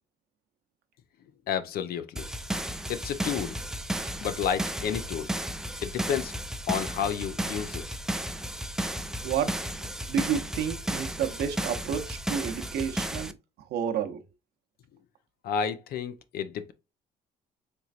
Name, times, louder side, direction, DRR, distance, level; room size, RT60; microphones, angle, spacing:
voice 1, 1.5-2.3 2.9-3.6 4.2-5.3 5.8-6.3 6.7-7.8 15.4-16.7, left 8 dB, 65° left, 0.6 m, -31 dB
sound 1, 2.2-13.3, right 1 dB, 5° right, 0.3 m, -33 dB
voice 2, 9.2-9.6 10.1-13.4 13.7-14.2, right 8 dB, 75° right, 0.8 m, -30 dB
4.4 x 3.1 x 2.4 m
cardioid pair, 110°, 17 cm